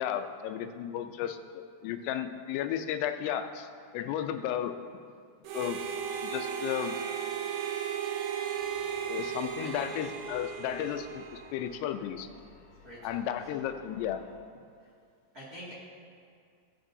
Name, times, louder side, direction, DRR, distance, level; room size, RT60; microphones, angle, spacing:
voice 1, 0.0-4.7 5.5-5.8 6.2-7.0 9.1-12.3 13.0-14.2, left 10 dB, 90° left, 8 dB, 2.7 m, -34 dB
Harmonica, 5.4-11.8, right 7 dB, 85° right, 2.8 m, -35 dB
sound 1, 8.5-14.3, left 3 dB, 55° left, 2.3 m, -57 dB
voice 2, 12.8-13.3 14.8-14.9 15.3-15.7, equal, 30° right, -8 dB, 1.8 m, -46 dB
16.0 x 8.8 x 2.7 m, 2.3 s
omnidirectional pair, 4.7 m